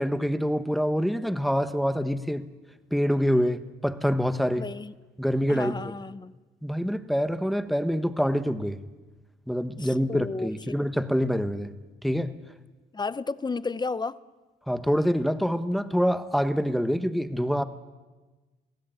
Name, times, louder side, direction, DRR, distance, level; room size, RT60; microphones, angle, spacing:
voice 1, 0.0-2.4 2.9-4.7 5.2-5.9 6.6-8.8 9.5-11.7 12.0-12.3 14.7-17.6, equal, ahead, 11 dB, 1.2 m, -26 dB
voice 2, 4.6-4.9 5.5-6.3 9.8-10.8 12.9-14.2, left 4 dB, 20° left, 17 dB, 0.7 m, -33 dB
22.0 x 16.0 x 9.1 m, 1.2 s
cardioid pair, 90°, 20 cm